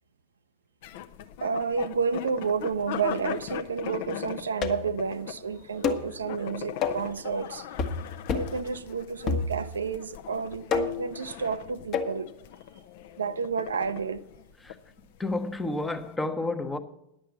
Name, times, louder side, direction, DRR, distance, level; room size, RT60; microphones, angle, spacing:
sound 1, 0.8-16.1, left 10 dB, 50° left, 0.6 m, -41 dB
voice 1, 1.4-7.7 8.3-12.3 13.2-14.2, right 5 dB, 70° right, 0.5 m, -30 dB
sound 2, 4.6-5.0 5.8-6.1 6.8-7.1 7.8-8.0 8.3-8.6 9.3-9.9 10.7-11.1 11.9-12.2, left 5 dB, 35° left, 1.1 m, -28 dB
voice 2, 15.2-16.8, left 2 dB, 10° left, 0.9 m, -30 dB
10.5 x 7.5 x 7.0 m
figure-of-eight pair, 90°, 0 cm